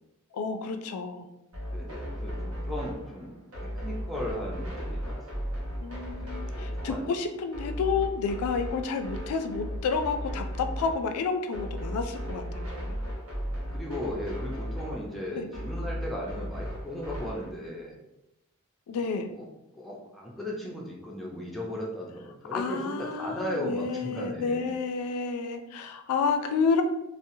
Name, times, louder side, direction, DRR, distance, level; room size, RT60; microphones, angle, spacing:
voice 1, 0.3-1.3 5.8-13.0 15.4-15.5 18.9-19.3 22.5-26.8, left 5 dB, 85° left, 8 dB, 0.3 m, -30 dB
sound 1, 1.5-17.5, equal, 75° right, 0.8 m, -36 dB
voice 2, 1.7-3.3 3.7-5.4 6.1-7.1 13.7-17.9 19.3-19.5 19.7-24.7, left 1 dB, ahead, -4 dB, 0.4 m, -37 dB
2.7 x 2.0 x 2.6 m, 0.91 s
head